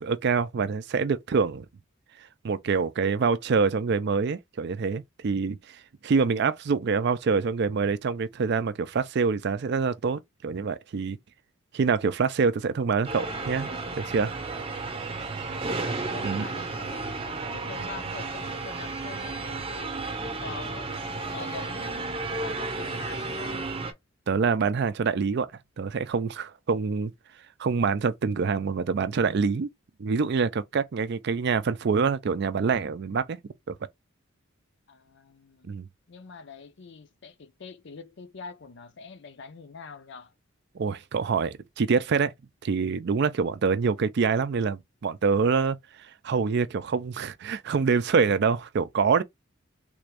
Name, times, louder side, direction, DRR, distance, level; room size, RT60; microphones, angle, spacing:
voice 1, 0.0-1.7 2.4-11.2 11.7-14.3 16.2-16.5 24.3-25.5 25.8-27.1 27.6-29.7 30.0-33.4 33.7-33.8 35.6-35.9 40.7-42.3 42.6-49.2, right 5 dB, 55° right, 0.4 m, -26 dB
sound 1, 13.0-23.9, right 3 dB, 25° right, 0.7 m, -33 dB
voice 2, 15.3-15.8 16.1-20.0 20.4-20.9 21.2-22.1 22.4-23.7 34.9-35.7 36.1-40.3, left 4 dB, 60° left, 0.5 m, -44 dB
3.4 x 2.5 x 3.2 m
head